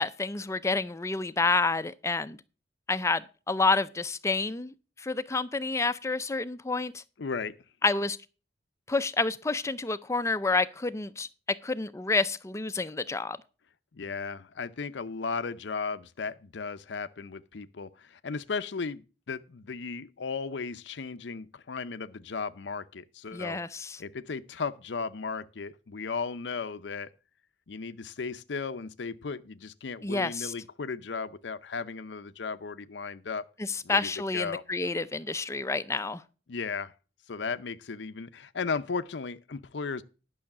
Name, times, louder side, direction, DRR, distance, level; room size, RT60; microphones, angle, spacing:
voice 1, 0.0-2.4 2.9-7.0 7.8-8.2 8.9-11.3 11.6-13.4 23.3-24.0 30.0-30.5 33.6-36.2, left 3 dB, 15° left, 0.4 m, -29 dB
voice 2, 7.2-7.6 13.9-23.6 24.0-27.1 27.7-33.4 33.8-34.6 36.5-36.9 37.3-40.0, left 5 dB, 90° left, 0.6 m, -35 dB
11.5 x 6.4 x 5.8 m
head